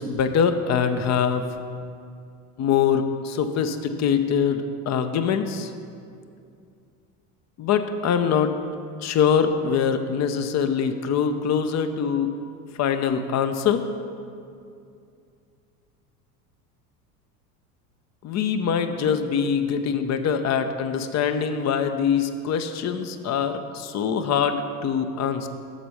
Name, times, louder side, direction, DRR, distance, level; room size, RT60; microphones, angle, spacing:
voice 1, 0.0-1.6 2.6-5.7 7.6-8.5 9.0-12.3 12.8-13.8 18.2-25.5, left 7 dB, 35° left, 8 dB, 0.7 m, -23 dB
8.1 x 6.8 x 5.6 m, 2.4 s
hypercardioid pair, 80°, 47 cm